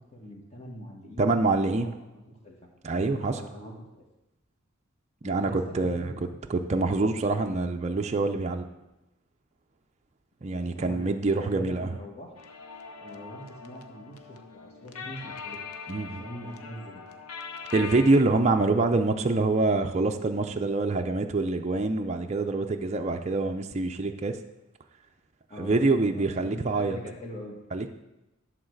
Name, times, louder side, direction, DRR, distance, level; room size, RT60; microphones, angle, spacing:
voice 1, 0.1-2.6 3.0-4.0 5.2-6.3 10.5-12.3 13.0-15.6 15.9-17.2 25.5-25.8 26.1-27.6, equal, 30° left, -1 dB, 1.7 m, -43 dB
voice 2, 1.2-1.9 2.8-3.4 5.2-6.1 6.5-8.7 10.4-11.9 15.9-16.2 17.7-24.4 25.6-27.0 27.7-27.9, right 3 dB, 30° right, 4 dB, 0.4 m, -25 dB
sound 1, 12.4-18.2, left 5 dB, 90° left, 0.7 m, -42 dB
11.0 x 3.9 x 6.4 m, 0.98 s
head